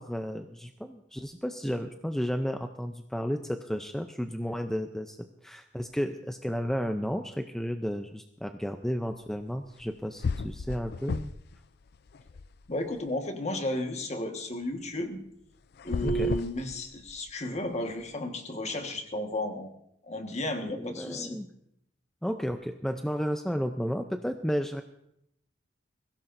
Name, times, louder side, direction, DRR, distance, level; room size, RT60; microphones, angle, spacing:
voice 1, 0.0-11.3 16.0-16.3 20.7-21.5 22.2-24.8, equal, ahead, 6 dB, 0.5 m, -32 dB
sound 1, 9.8-9.9 10.2-11.6 11.9-13.0 15.7-17.3, left 4 dB, 55° left, 0.4 m, -34 dB
voice 2, 12.7-15.2 15.8-19.7 20.0-21.4, left 1 dB, 35° left, 4 dB, 1.5 m, -33 dB
21.5 x 16.5 x 2.6 m, 0.77 s
head